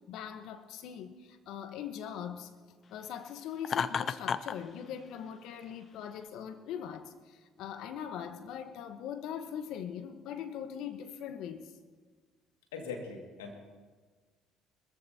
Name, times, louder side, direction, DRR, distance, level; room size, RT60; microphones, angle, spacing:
voice 1, 0.1-2.5 2.9-11.7, left 8 dB, 65° left, 9 dB, 1.2 m, -41 dB
Laughter, 3.6-4.6, left 6 dB, 45° left, 0.5 m, -31 dB
voice 2, 12.7-13.5, left 4 dB, 85° left, 2 dB, 2.1 m, -40 dB
21.5 x 14.5 x 2.9 m, 1.5 s
hypercardioid pair, 60°, 0 cm